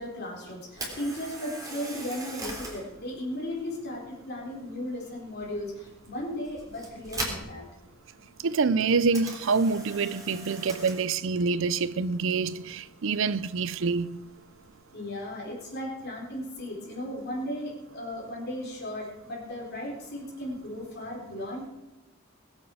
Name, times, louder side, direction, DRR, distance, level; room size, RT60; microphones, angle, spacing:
voice 1, 0.0-7.6 14.9-21.7, left 1 dB, 55° left, 4.1 m, -36 dB
Camera, 0.7-14.7, right 2 dB, 15° right, 3.6 m, -43 dB
voice 2, 8.4-14.2, right 4 dB, 65° right, 0.5 m, -26 dB
20.0 x 8.3 x 6.3 m
head